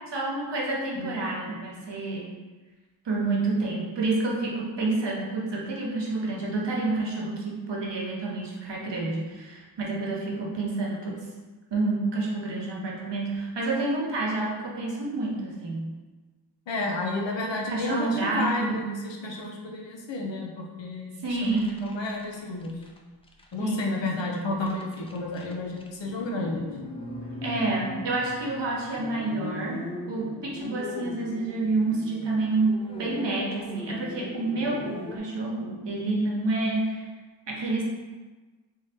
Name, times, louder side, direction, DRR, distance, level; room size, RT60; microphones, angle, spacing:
voice 1, 0.1-2.2 3.0-11.2 11.7-15.9 17.7-18.8 21.2-21.8 23.6-24.5 27.4-29.8 30.1-32.7 33.0-34.9 35.1-37.1 37.5-37.8, right 2 dB, 70° right, -2 dB, 1.0 m, -29 dB
voice 2, 16.7-21.1 21.4-22.7 23.5-26.7, left 2 dB, 85° left, 0 dB, 0.7 m, -31 dB
sound 1, 21.2-23.0 23.3-23.5 23.8-24.1 24.4-35.2, left 1 dB, 15° left, 0.4 m, -39 dB
3.6 x 2.8 x 3.4 m, 1.3 s
wide cardioid pair, 65°, 43 cm